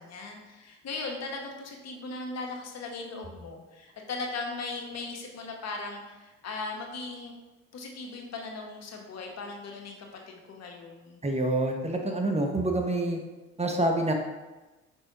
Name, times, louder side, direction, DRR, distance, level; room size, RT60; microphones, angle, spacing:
voice 1, 0.0-7.4 7.7-11.2, left 3 dB, 55° left, 1 dB, 1.3 m, -38 dB
voice 2, 11.2-13.2 13.6-14.1, right 1 dB, 20° right, 2 dB, 1.0 m, -27 dB
5.5 x 3.4 x 5.2 m, 1.1 s
supercardioid pair, 65°, 31 cm